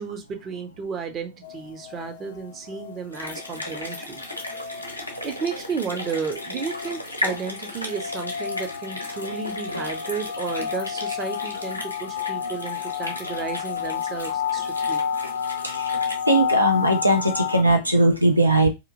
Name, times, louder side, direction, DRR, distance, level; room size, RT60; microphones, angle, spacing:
voice 1, 0.0-4.2 4.6-4.9 5.2-15.0, right 6 dB, 30° right, 0.6 m, -33 dB
sound 1, 1.4-17.6, left 7 dB, 60° left, 0.3 m, -31 dB
sound 2, 3.1-16.1, left 1 dB, 90° left, 0.7 m, -36 dB
voice 2, 16.3-18.7, right 1 dB, 85° right, 0.5 m, -19 dB
2.9 x 2.4 x 2.6 m
figure-of-eight pair, 90°, 0 cm